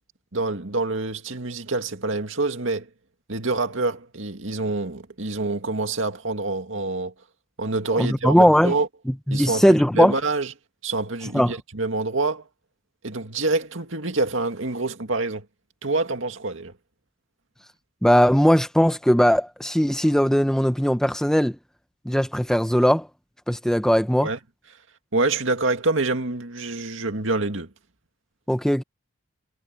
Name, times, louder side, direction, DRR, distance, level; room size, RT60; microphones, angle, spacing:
voice 1, 0.3-2.9 3.3-7.1 7.6-8.9 9.3-10.5 10.8-12.4 13.0-15.4 15.8-16.7 24.2-24.4 25.1-27.7, right 3 dB, 65° right, 2.2 m, -26 dB
voice 2, 7.9-8.7 9.3-10.1 11.3-11.5 18.0-21.6 22.0-23.1 23.5-24.3 28.5-28.8, equal, 5° left, 0.9 m, -19 dB
head